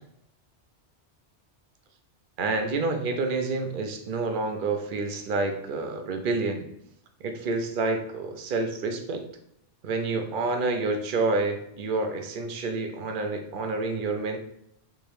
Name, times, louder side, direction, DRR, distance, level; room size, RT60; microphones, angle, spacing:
voice 1, 2.4-6.6 7.2-9.2 9.8-14.4, right 3 dB, 60° right, 5 dB, 0.6 m, -28 dB
3.5 x 2.9 x 3.2 m, 0.77 s
omnidirectional pair, 1.1 m